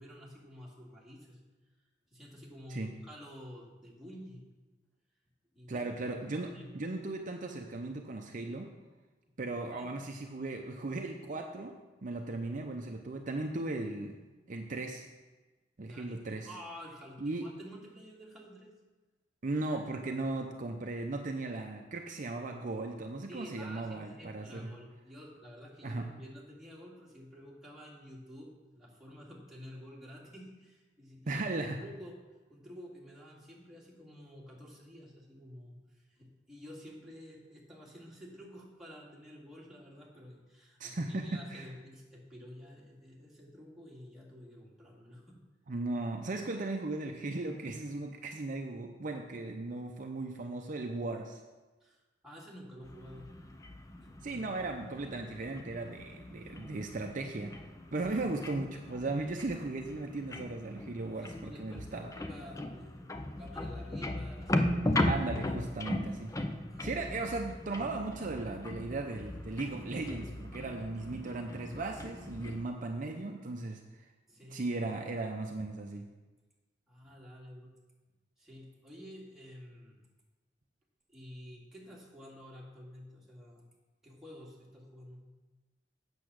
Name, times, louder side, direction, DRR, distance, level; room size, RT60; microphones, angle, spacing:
voice 1, 0.0-1.4 2.1-4.4 5.5-6.0 6.3-6.7 9.7-9.9 15.8-16.2 16.4-18.7 23.3-32.2 32.5-45.4 51.8-53.3 54.0-54.6 58.1-58.3 61.1-65.1 66.7-67.3 74.3-74.7 76.9-77.7 78.4-80.0 81.1-83.6 84.0-85.2, equal, 5° right, -5 dB, 2.2 m, -50 dB
voice 2, 5.7-8.7 9.4-11.8 12.0-14.2 14.5-15.1 15.8-16.5 17.2-17.5 19.4-24.7 25.8-26.1 31.3-31.8 40.8-41.7 45.7-51.4 54.2-57.6 57.9-62.1 65.1-66.4 66.8-73.8 74.5-76.0, right 2 dB, 45° right, 3 dB, 0.6 m, -37 dB
sound 1, 52.8-72.6, left 1 dB, 20° left, 0.6 m, -38 dB
8.4 x 6.9 x 6.3 m, 1.2 s
head